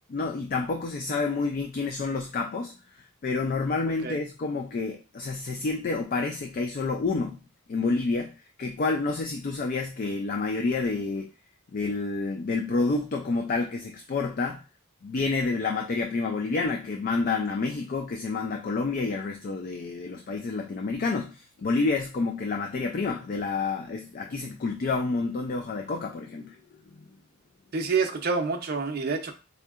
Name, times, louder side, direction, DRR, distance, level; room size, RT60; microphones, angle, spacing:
voice 1, 0.1-7.4 7.7-8.3 8.6-11.3 11.7-14.6 15.0-26.6 27.0-27.1, left 3 dB, 40° left, 3 dB, 0.3 m, -29 dB
voice 2, 27.7-29.4, right 4 dB, 50° right, 5 dB, 0.5 m, -27 dB
4.2 x 2.7 x 2.4 m, 0.31 s
head